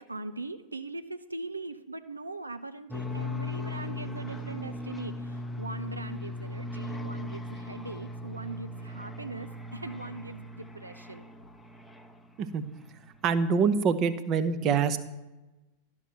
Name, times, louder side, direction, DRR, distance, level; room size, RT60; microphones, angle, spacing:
voice 1, 0.0-11.3, right 2 dB, 80° right, 10 dB, 0.5 m, -41 dB
sound 1, 2.9-12.5, left 1 dB, 5° left, 0.7 m, -38 dB
voice 2, 13.2-15.0, right 6 dB, 35° right, 11 dB, 0.7 m, -25 dB
12.0 x 5.9 x 6.1 m, 1.1 s
figure-of-eight pair, 90°, 0 cm